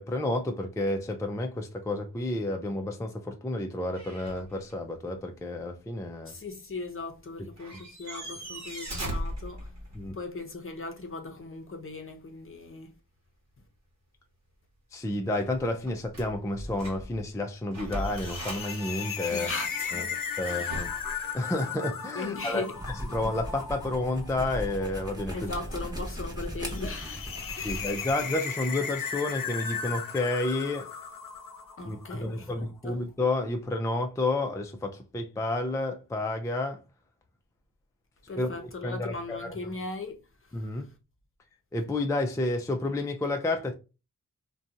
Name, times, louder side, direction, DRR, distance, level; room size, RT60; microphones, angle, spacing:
voice 1, 0.0-6.3 10.0-10.2 14.9-19.5 19.9-20.1 20.4-20.9 21.3-22.6 23.1-25.5 27.6-30.9 31.9-36.8 38.4-38.6 38.8-39.5 40.5-40.9 41.7-43.7, left 2 dB, 10° left, 0.3 m, -30 dB
sound 1, 3.9-4.7 5.1-5.2 7.3-7.4 7.6-10.1 15.3-17.2 17.7-21.4, right 1 dB, 55° right, 1.0 m, -39 dB
voice 2, 6.2-9.7 10.1-12.9 19.3-20.1 20.4-20.8 22.1-23.2 25.3-28.1 31.8-33.0 38.3-40.9, left 3 dB, 40° left, 0.7 m, -39 dB
sound 2, 17.9-32.3, left 6 dB, 75° left, 0.6 m, -37 dB
sound 3, 22.7-28.0, equal, 10° right, 1.0 m, -38 dB
2.7 x 2.2 x 2.5 m
wide cardioid pair, 65°, 33 cm